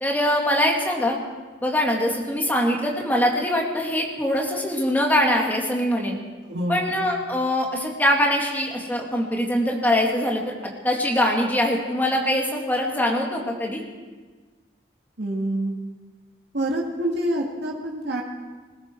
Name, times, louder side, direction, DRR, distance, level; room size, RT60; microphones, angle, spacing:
voice 1, 0.0-1.2 1.6-6.2 6.7-13.8, left 1 dB, 10° left, -1 dB, 2.1 m, -23 dB
voice 2, 6.5-6.8 15.2-15.8 16.5-18.2, right 1 dB, 80° right, -2 dB, 2.0 m, -26 dB
20.0 x 15.5 x 4.5 m, 1.4 s
head